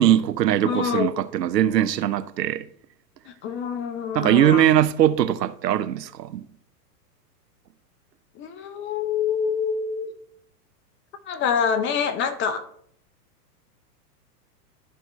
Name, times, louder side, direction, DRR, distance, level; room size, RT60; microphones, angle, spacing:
voice 1, 0.0-2.7 4.1-6.5, right 11 dB, 85° right, 0.6 m, -21 dB
voice 2, 0.6-1.1 3.3-4.6 8.4-10.1 11.3-12.7, left 7 dB, 25° left, 0.7 m, -26 dB
13.0 x 4.4 x 3.1 m
hypercardioid pair, 115°, 48 cm